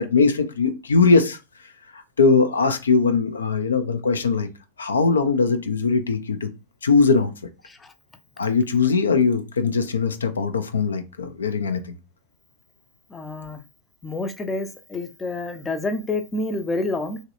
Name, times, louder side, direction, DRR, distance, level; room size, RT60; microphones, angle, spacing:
voice 1, 0.0-1.4 1.9-4.5 4.8-6.5 6.8-7.3 8.4-12.0, left 4 dB, 70° left, 0.4 m, -20 dB
voice 2, 13.1-13.6 14.0-17.2, left 2 dB, 15° left, 0.5 m, -28 dB
3.1 x 2.6 x 2.6 m
figure-of-eight pair, 90°, 0 cm